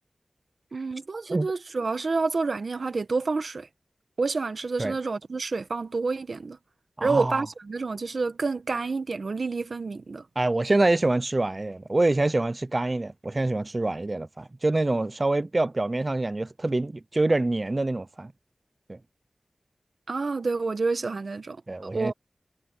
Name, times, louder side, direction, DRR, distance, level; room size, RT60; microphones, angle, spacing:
voice 1, 0.7-3.7 4.2-6.6 7.0-10.2 20.1-21.6 21.9-22.1, right 4 dB, 65° right, 1.2 m, -28 dB
voice 2, 7.0-7.4 10.4-18.3 18.9-19.0 21.7-22.1, right 2 dB, 35° right, 0.4 m, -25 dB
wide cardioid pair, 85°, 0 cm